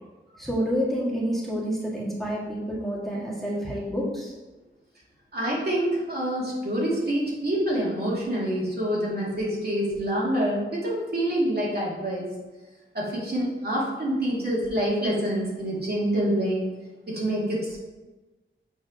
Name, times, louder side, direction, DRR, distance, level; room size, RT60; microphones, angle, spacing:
voice 1, 0.3-4.3, equal, ahead, -6 dB, 1.8 m, -28 dB
voice 2, 5.3-12.3 12.9-16.6 17.1-17.8, right 1 dB, 50° right, -5 dB, 2.3 m, -26 dB
6.7 x 4.1 x 5.0 m, 1.1 s
wide cardioid pair, 95°, 21 cm